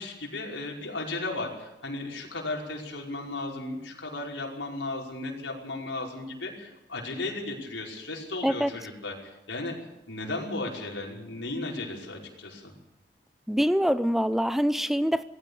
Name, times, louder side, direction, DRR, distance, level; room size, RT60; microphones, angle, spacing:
voice 1, 0.0-9.7 10.1-12.7, left 2 dB, 85° left, 0 dB, 5.4 m, -35 dB
voice 2, 13.5-15.2, equal, ahead, 14 dB, 0.6 m, -24 dB
19.0 x 16.0 x 8.5 m, 0.93 s
head